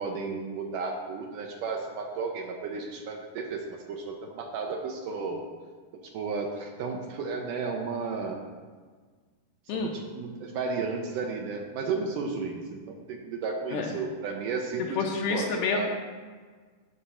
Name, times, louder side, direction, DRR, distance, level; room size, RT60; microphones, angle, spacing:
voice 1, 0.0-5.4 6.1-8.4 9.7-15.0 15.3-15.9, right 4 dB, 75° right, 2 dB, 2.0 m, -33 dB
voice 2, 15.0-15.9, left 5 dB, 80° left, 1 dB, 1.9 m, -28 dB
10.0 x 5.9 x 5.7 m, 1.5 s
omnidirectional pair, 4.6 m